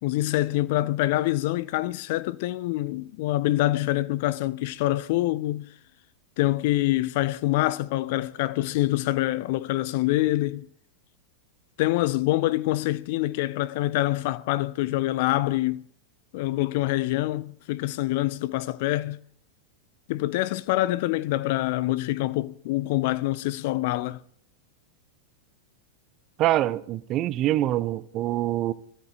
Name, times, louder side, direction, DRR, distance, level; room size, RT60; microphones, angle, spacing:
voice 1, 0.0-5.7 6.4-10.7 11.8-15.8 16.3-19.2 20.1-24.2, left 17 dB, 50° left, 0.4 m, -25 dB
voice 2, 26.4-28.7, right 14 dB, 35° right, 0.6 m, -25 dB
25.5 x 13.5 x 2.6 m
figure-of-eight pair, 90°, 0 cm